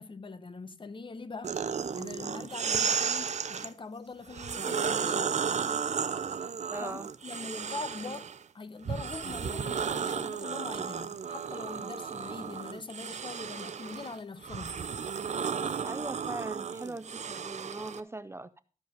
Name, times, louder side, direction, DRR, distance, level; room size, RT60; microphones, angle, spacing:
voice 1, 0.0-1.6 1.9-5.4 6.8-14.8, left 4 dB, 40° left, 0.8 m, -43 dB
sound 1, 1.4-3.7 4.3-8.4 8.9-18.0, right 6 dB, 65° right, 0.6 m, -33 dB
voice 2, 6.7-7.1 15.8-18.6, right 2 dB, 20° right, 0.4 m, -40 dB
13.5 x 5.2 x 5.2 m
wide cardioid pair, 130°, 13 cm